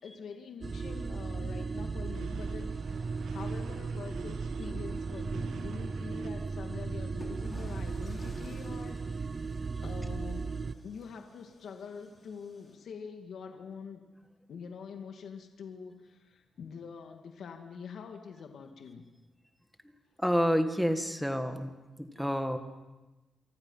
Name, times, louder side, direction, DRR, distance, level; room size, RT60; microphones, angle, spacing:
voice 1, 0.0-9.5 9.8-10.6 10.8-14.0 14.5-19.0, left 6 dB, 60° left, 4 dB, 2.3 m, -45 dB
sound 1, 0.6-10.7, right 4 dB, 30° right, 0.7 m, -36 dB
sound 2, 2.1-6.3, right 8 dB, 85° right, 1.3 m, -51 dB
sound 3, 6.4-6.5 7.2-12.8, left 2 dB, 25° left, 4.3 m, -55 dB
voice 2, 20.2-22.6, equal, ahead, 7 dB, 1.7 m, -29 dB
29.0 x 24.0 x 5.7 m, 1.1 s
wide cardioid pair, 160°, 0 cm